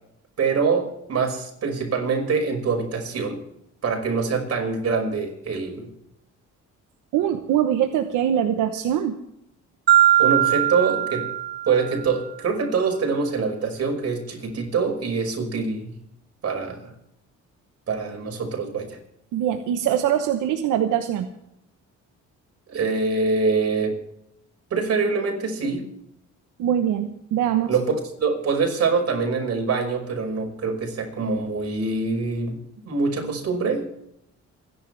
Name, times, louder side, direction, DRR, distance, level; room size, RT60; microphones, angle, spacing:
voice 1, 0.4-3.4 3.8-5.9 10.2-11.3 11.7-15.9 16.4-16.8 17.9-19.0 22.7-23.9 24.7-25.8 27.7-27.9 28.2-32.6 32.8-33.9, right 4 dB, 55° right, 2 dB, 5.7 m, -24 dB
voice 2, 7.1-9.2 19.3-21.3 26.6-27.7, right 10 dB, 90° right, 7 dB, 1.0 m, -23 dB
Marimba xylophone, 9.9-12.1, right 12 dB, 35° right, 1.3 m, -20 dB
28.0 x 11.0 x 3.4 m, 0.77 s
cardioid pair, 90°, 30 cm